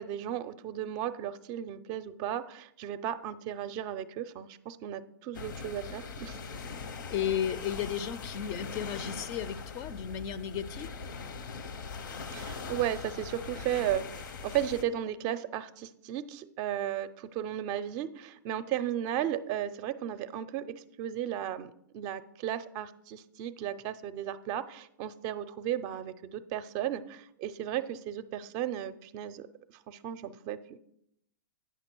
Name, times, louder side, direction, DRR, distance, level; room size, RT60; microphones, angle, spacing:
voice 1, 0.0-6.4 12.3-29.5 29.9-30.8, right 11 dB, 40° right, 13 dB, 0.5 m, -35 dB
sound 1, 5.3-14.8, left 4 dB, 70° left, 0.8 m, -41 dB
voice 2, 7.1-10.9, left 9 dB, 35° left, 16 dB, 0.4 m, -34 dB
9.1 x 5.9 x 4.5 m, 0.74 s
hypercardioid pair, 115°, 11 cm